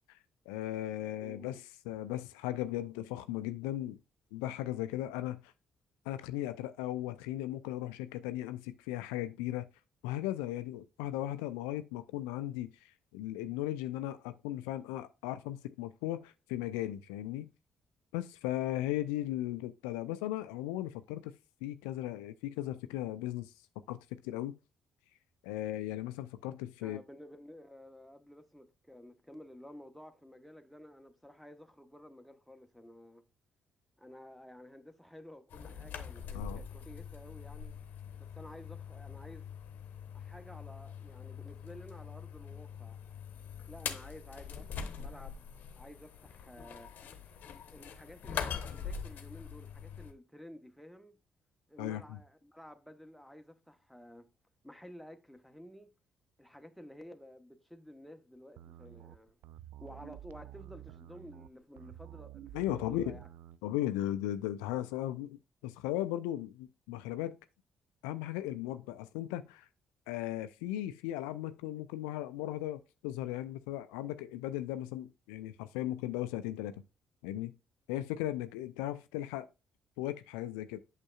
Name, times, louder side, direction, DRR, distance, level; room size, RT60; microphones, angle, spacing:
voice 1, 0.5-4.0 4.3-5.5 6.1-9.7 10.0-17.5 18.1-21.3 21.6-23.5 23.9-24.6 25.4-27.0 36.3-36.6 51.8-52.0 62.5-63.2 63.6-67.4 68.0-69.7 70.1-76.8 77.2-77.5 77.9-79.5 80.0-80.8, left 14 dB, 75° left, 0.4 m, -37 dB
voice 2, 1.2-1.6 26.8-33.2 34.0-37.7 38.2-39.5 40.1-43.0 43.7-45.5 45.7-46.9 47.7-51.2 51.7-54.3 54.6-55.9 56.4-59.4 59.8-63.3, equal, ahead, 1.1 m, -52 dB
sound 1, 35.5-50.1, left 7 dB, 60° left, 0.9 m, -43 dB
sound 2, 58.6-63.6, right 14 dB, 65° right, 0.4 m, -50 dB
8.8 x 6.5 x 2.4 m
figure-of-eight pair, 45°, 3 cm